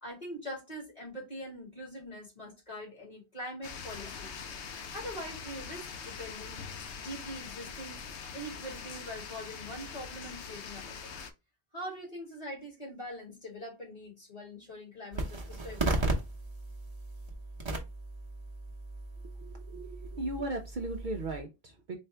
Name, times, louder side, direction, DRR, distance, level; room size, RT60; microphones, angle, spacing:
voice 1, 0.0-4.3 4.9-6.6 7.0-11.1 11.7-16.1, equal, 35° left, 2.1 m, -43 dB
sound 1, 3.6-11.3, left 6 dB, 85° left, 0.9 m, -43 dB
sound 2, 15.1-21.4, right 2 dB, 25° right, 0.9 m, -36 dB
voice 2, 19.4-22.0, right 2 dB, 50° right, 0.7 m, -37 dB
4.1 x 2.7 x 3.3 m
omnidirectional pair, 1.1 m